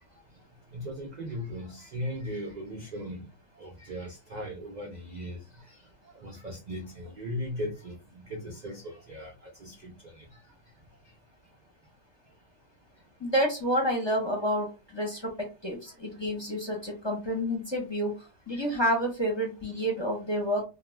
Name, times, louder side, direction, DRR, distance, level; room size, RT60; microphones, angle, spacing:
voice 1, 0.7-3.3 3.6-5.8 6.1-10.4 16.1-16.2 18.5-18.7, equal, 65° right, 0.4 m, -38 dB
voice 2, 13.2-18.2 18.5-20.6, equal, 25° left, 0.7 m, -29 dB
2.3 x 2.2 x 3.1 m
omnidirectional pair, 1.4 m